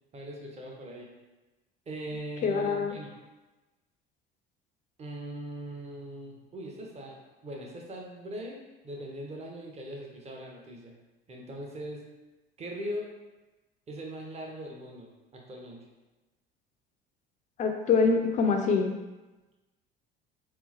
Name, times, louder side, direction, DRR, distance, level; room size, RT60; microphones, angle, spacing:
voice 1, 0.1-1.1 1.9-3.1 5.0-7.2 7.4-11.0 11.3-12.0 12.6-13.1 13.9-15.8, right 1 dB, 20° right, -1 dB, 0.7 m, -40 dB
voice 2, 2.4-2.9 17.6-18.9, left 5 dB, 25° left, 4 dB, 0.4 m, -24 dB
3.7 x 2.4 x 2.8 m, 1.1 s
figure-of-eight pair, 60°, 29 cm